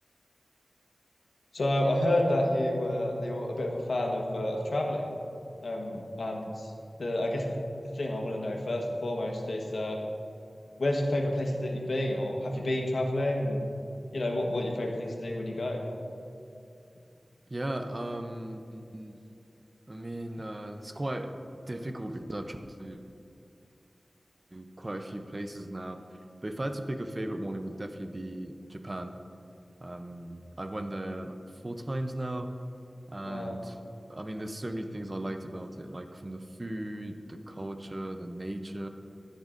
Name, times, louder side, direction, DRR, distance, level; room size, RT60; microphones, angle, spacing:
voice 1, 1.5-5.1 5.6-6.7 7.0-7.6 7.9-10.0 10.8-13.6 14.1-15.8 33.2-33.6, left 1 dB, 80° left, 1 dB, 1.1 m, -29 dB
voice 2, 17.5-19.2 19.9-21.3 21.7-23.0 24.5-26.0 26.4-29.2 29.8-32.5 33.1-33.8 34.1-38.9, right 1 dB, 30° right, 6 dB, 0.6 m, -37 dB
11.5 x 10.5 x 2.5 m, 2.6 s
wide cardioid pair, 65°, 0 cm